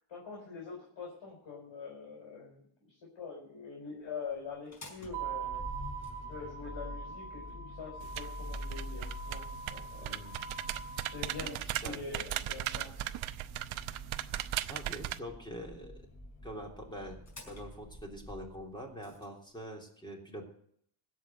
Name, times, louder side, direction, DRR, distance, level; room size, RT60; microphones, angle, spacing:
voice 1, 0.1-5.7 6.3-9.4 9.7-10.2 11.1-13.0, left 5 dB, 60° left, -2 dB, 5.4 m, -44 dB
Motor vehicle (road), 4.6-19.2, left 1 dB, 35° left, 5.1 m, -46 dB
Mallet percussion, 5.1-7.2, right 16 dB, 50° right, 1.6 m, -41 dB
sound 1, 8.0-15.2, right 14 dB, 70° right, 0.9 m, -38 dB
voice 2, 10.0-10.4 11.4-12.0 14.7-15.9 16.4-20.5, equal, 10° left, 0 dB, 3.2 m, -44 dB
16.5 x 6.4 x 9.1 m, 0.66 s
cardioid pair, 105°, 50 cm